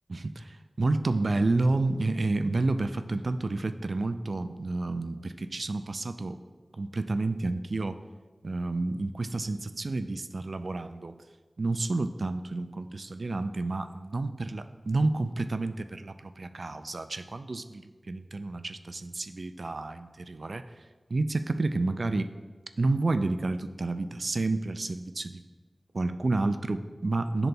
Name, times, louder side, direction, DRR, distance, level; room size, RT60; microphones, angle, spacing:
voice 1, 0.1-6.4 6.7-8.0 8.4-11.1 11.6-20.7 21.1-22.3 22.8-25.4 25.9-27.5, right 2 dB, 70° right, 10 dB, 0.3 m, -30 dB
10.5 x 3.9 x 2.3 m, 1.4 s
wide cardioid pair, 50°, 0 cm